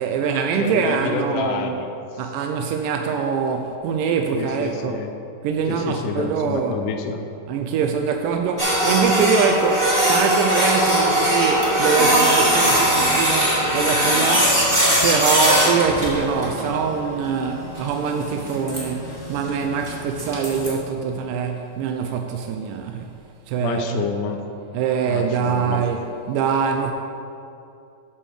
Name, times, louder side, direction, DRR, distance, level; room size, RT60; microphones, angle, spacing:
voice 1, 0.0-1.7 2.2-5.0 5.4-6.8 7.5-14.6 15.0-23.1 23.5-24.0 24.7-26.9, right 6 dB, 80° right, 4 dB, 2.0 m, -23 dB
voice 2, 0.6-2.2 4.3-5.1 5.7-7.3 23.6-24.4 25.0-25.8, left 5 dB, 75° left, 5 dB, 2.0 m, -28 dB
sound 1, 7.0-7.3 10.3-14.2 14.6-18.2, right 1 dB, 55° right, 1.2 m, -35 dB
Printer, 8.6-20.7, right 1 dB, 10° right, 1.3 m, -20 dB
8.7 x 5.6 x 6.3 m, 2.6 s
omnidirectional pair, 4.2 m